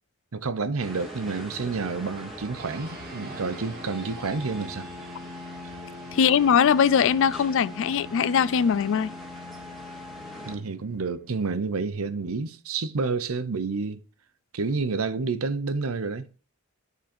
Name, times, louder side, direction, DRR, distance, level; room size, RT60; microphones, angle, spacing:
voice 1, 0.3-4.9 10.4-14.0 14.5-16.3, right 4 dB, 85° right, 0.7 m, -29 dB
sound 1, 0.8-10.5, left 1 dB, ahead, 2.1 m, -42 dB
sound 2, 2.6-12.3, left 1 dB, 45° right, 1.1 m, -43 dB
voice 2, 6.1-9.1, left 7 dB, 65° left, 0.4 m, -21 dB
10.0 x 3.9 x 4.3 m
head